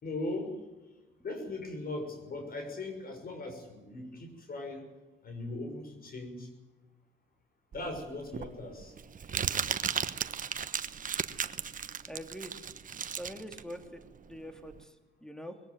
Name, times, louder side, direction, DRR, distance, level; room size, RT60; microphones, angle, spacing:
voice 1, 0.0-0.6 1.2-4.9 5.2-6.5 7.7-8.9, left 2 dB, 50° left, 5 dB, 6.2 m, -39 dB
Crumpling crinkling, 7.7-14.8, right 7 dB, 40° right, 1.2 m, -35 dB
voice 2, 12.1-12.5 13.2-15.6, equal, 5° left, 6 dB, 3.0 m, -44 dB
22.0 x 17.5 x 9.4 m, 1.1 s
cardioid pair, 90°, 20 cm